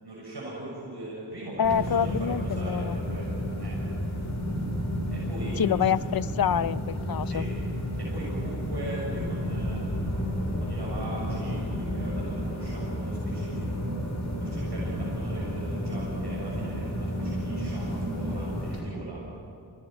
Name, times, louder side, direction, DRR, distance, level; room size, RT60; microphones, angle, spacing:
voice 1, 0.0-2.1 2.4-3.8 5.1-5.8 7.2-7.5 8.0-13.9 14.4-19.2, right 1 dB, 75° right, -5 dB, 6.9 m, -40 dB
voice 2, 1.6-3.0 5.6-7.5, left 8 dB, 60° left, 16 dB, 0.6 m, -26 dB
sound 1, 1.6-18.8, equal, 45° left, 6.9 m, -31 dB
28.5 x 18.5 x 9.2 m, 2.6 s
wide cardioid pair, 50°, 41 cm